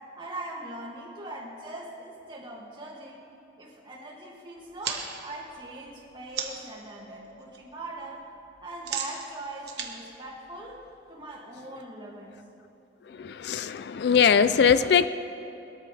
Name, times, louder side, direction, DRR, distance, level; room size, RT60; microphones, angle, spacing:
voice 1, 0.2-3.2 3.6-8.2 8.6-10.8 11.1-12.4, right 2 dB, 25° right, -3 dB, 2.2 m, -41 dB
sound 1, 4.6-6.8 7.1-7.6 7.8-11.1, right 7 dB, 60° right, 1.2 m, -37 dB
voice 2, 13.1-15.1, left 7 dB, 60° left, 13 dB, 0.3 m, -21 dB
21.0 x 13.0 x 3.3 m, 3.0 s
head